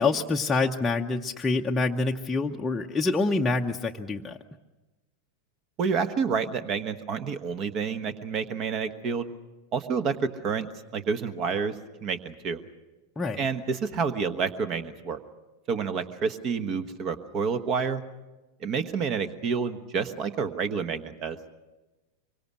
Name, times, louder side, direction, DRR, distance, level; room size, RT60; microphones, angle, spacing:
voice 1, 0.0-4.4 13.2-13.4, left 3 dB, 10° left, 1 dB, 0.8 m, -26 dB
voice 2, 5.8-9.3 9.7-11.7 12.0-12.6 13.4-15.2 15.7-18.0 18.6-21.4, right 5 dB, 35° right, 12 dB, 1.3 m, -29 dB
24.5 x 24.0 x 6.3 m, 1.1 s
figure-of-eight pair, 90°, 0 cm